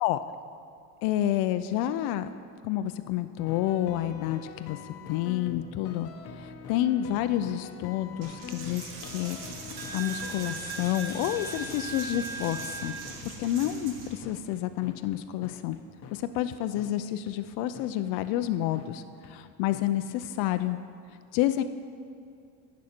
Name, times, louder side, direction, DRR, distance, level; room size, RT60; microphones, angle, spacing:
voice 1, 1.0-2.3 2.6-4.8 5.1-6.1 6.4-9.4 9.9-12.9 13.2-15.8 16.1-20.8 21.3-21.6, left 12 dB, 85° left, 10 dB, 0.5 m, -29 dB
sound 1, 3.4-16.4 16.8-16.9 17.3-17.4 17.7-17.9 18.2-18.3 18.7-18.9 19.2-19.3 19.7-19.9 20.2-20.3, left 7 dB, 45° left, 0.8 m, -45 dB
Coin (dropping), 8.2-14.2, right 4 dB, 65° right, 1.6 m, -39 dB
15.5 x 6.2 x 4.4 m, 2.5 s
cardioid pair, 165°, 35 cm